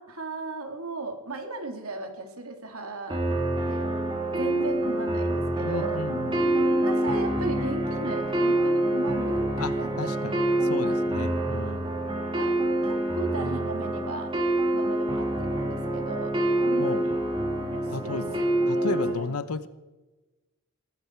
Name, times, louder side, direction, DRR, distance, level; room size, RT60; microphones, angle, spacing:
voice 1, 0.0-3.2 3.6-3.9 4.3-6.0 6.7-11.0 12.1-12.5 12.8-14.3 14.7-17.2 17.7-18.5 18.7-19.3, right 2 dB, 75° right, 5 dB, 2.8 m, -37 dB
sound 1, 3.1-19.1, right 1 dB, 20° right, 2.7 m, -26 dB
voice 2, 5.6-6.7 9.6-10.4 10.6-12.0 16.8-17.0 17.9-19.7, left 4 dB, 90° left, 14 dB, 0.8 m, -34 dB
19.0 x 15.0 x 4.6 m, 1.1 s
head